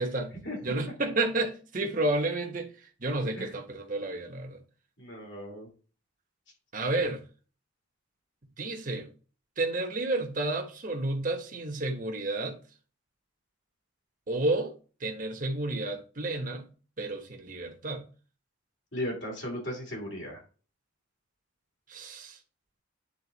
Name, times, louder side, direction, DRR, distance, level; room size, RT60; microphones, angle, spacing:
voice 1, 0.6-2.7 3.0-4.6 6.7-7.2 8.6-9.1 9.6-12.6 14.3-14.7 15.0-16.6 17.0-18.0 21.9-22.4, right 2 dB, 40° right, 1.1 m, -31 dB
voice 2, 5.0-5.7 18.9-20.4, left 1 dB, 60° left, 2.8 m, -36 dB
8.7 x 3.8 x 4.0 m
head